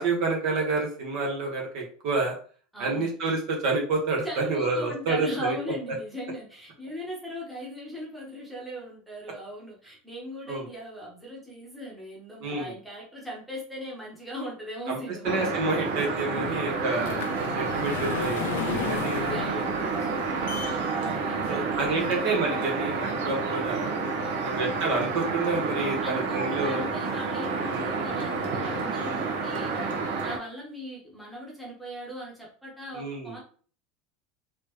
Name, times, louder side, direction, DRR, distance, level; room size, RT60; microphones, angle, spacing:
voice 1, 0.0-2.3 2.8-5.6 10.5-10.6 12.4-12.7 14.9-15.0 15.2-19.2 21.5-23.9 24.4-26.8 27.7-27.9 32.9-33.4, right 3 dB, 50° right, 0 dB, 1.5 m, -29 dB
voice 2, 2.7-3.1 4.2-15.4 16.5-16.6 18.4-22.1 24.2-24.6 26.0-29.9 30.2-33.4, equal, ahead, -5 dB, 1.4 m, -39 dB
sound 1, 15.2-30.4, right 4 dB, 80° right, 1.2 m, -29 dB
sound 2, 16.3-22.5 23.0-23.1 23.7-23.8 24.1-24.2, left 10 dB, 85° left, 0.4 m, -36 dB
4.2 x 3.2 x 3.1 m, 0.43 s
supercardioid pair, 155°, 0 cm